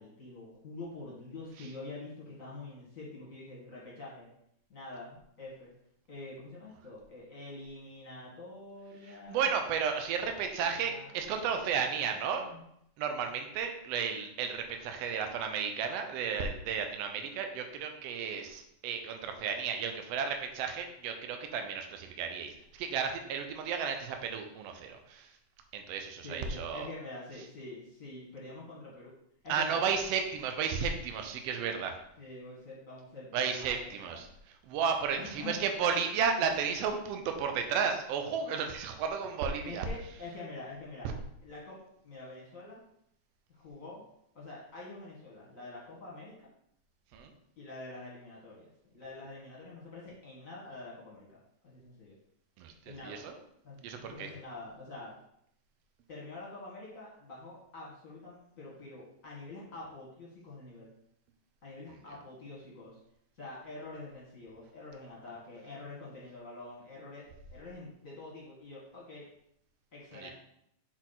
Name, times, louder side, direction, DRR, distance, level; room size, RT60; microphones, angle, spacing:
voice 1, 0.0-4.3 4.7-5.7 6.1-9.5 10.5-12.6 26.2-29.1 29.4-29.8 32.2-34.2 35.2-35.7 39.6-41.1 41.4-42.8 43.5-44.0 44.3-46.3 47.6-52.1 52.8-53.2 53.6-55.1 56.1-60.9 61.6-63.0 63.4-69.3 69.9-70.3, left 2 dB, 35° left, -5 dB, 1.4 m, -46 dB
voice 2, 9.1-12.5 13.0-25.3 25.7-26.9 29.5-31.9 33.3-34.3 34.7-39.9 47.1-47.3 52.6-52.7 53.0-53.4 53.8-54.3 70.1-70.3, right 6 dB, 80° right, 5 dB, 1.4 m, -33 dB
6.1 x 4.3 x 4.0 m, 0.74 s
omnidirectional pair, 3.8 m